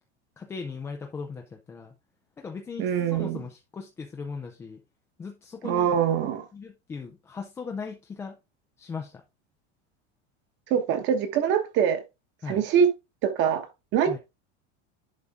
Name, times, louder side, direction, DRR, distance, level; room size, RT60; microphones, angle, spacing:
voice 1, 0.4-1.9 2.4-4.8 5.2-5.9 6.5-8.4 8.8-9.2 12.4-12.6 14.1-14.2, left 5 dB, 10° left, 0.4 m, -38 dB
voice 2, 2.8-3.4 5.6-6.5 10.7-12.0 12.5-12.9 13.2-13.7 13.9-14.2, right 8 dB, 35° right, 1.1 m, -24 dB
11.0 x 4.0 x 3.6 m
supercardioid pair, 170°, 34 cm